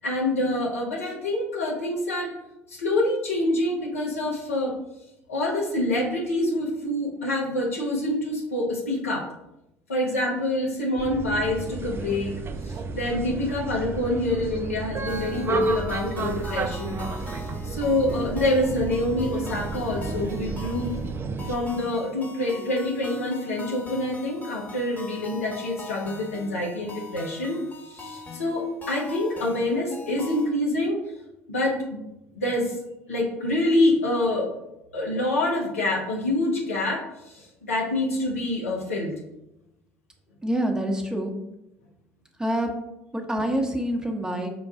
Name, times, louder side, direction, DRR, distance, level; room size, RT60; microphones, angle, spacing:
voice 1, 0.0-2.3 2.7-4.8 5.3-9.3 9.9-12.3 12.6-17.0 17.6-20.9 21.5-31.0 31.5-32.0 32.3-32.8 33.1-34.5 34.9-39.1, left 1 dB, 90° left, -2 dB, 0.9 m, -26 dB
sound 1, 11.0-21.6, right 3 dB, 35° right, 0.4 m, -31 dB
sound 2, 15.1-30.5, left 3 dB, 25° left, 1.1 m, -42 dB
voice 2, 40.4-41.3 42.4-42.7 43.1-44.5, right 1 dB, 10° right, 1 dB, 0.9 m, -26 dB
5.9 x 2.3 x 3.7 m, 0.89 s
hypercardioid pair, 60°, 7 cm